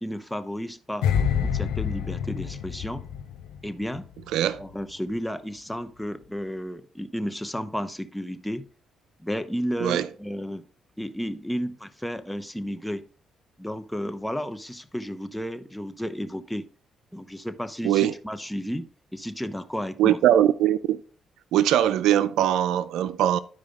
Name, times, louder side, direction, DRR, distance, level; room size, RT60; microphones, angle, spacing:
voice 1, 0.0-1.1 1.4-3.0 3.6-4.1 4.6-8.7 9.2-10.7 11.0-13.1 13.6-16.7 17.1-20.2, equal, 5° left, 0.9 m, -32 dB
sound 1, 1.0-4.2 4.5-4.7, left 8 dB, 85° left, 0.8 m, -27 dB
voice 2, 4.3-4.6 9.8-10.1 17.8-18.1 20.0-21.0 21.5-23.4, right 11 dB, 85° right, 0.5 m, -21 dB
11.5 x 4.9 x 3.6 m
supercardioid pair, 70°, 0 cm